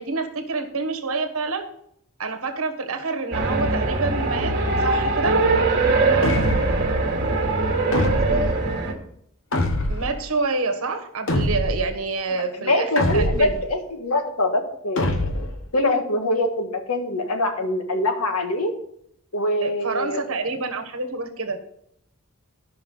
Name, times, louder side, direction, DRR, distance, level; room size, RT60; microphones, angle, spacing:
voice 1, 0.0-1.6 2.2-4.5 4.8-5.4 9.9-13.5 19.6-21.6, right 3 dB, 70° right, 6 dB, 1.3 m, -27 dB
sound 1, 3.3-8.9, right 3 dB, 50° right, 1.6 m, -21 dB
sound 2, 6.2-6.9 7.9-8.6 9.5-10.2 11.3-11.9 13.0-13.6 15.0-15.6, left 1 dB, 60° left, 1.1 m, -24 dB
voice 2, 12.6-15.2 15.7-18.7 19.3-20.2, left 1 dB, 90° left, 5 dB, 1.6 m, -23 dB
12.0 x 5.7 x 5.4 m, 0.71 s
head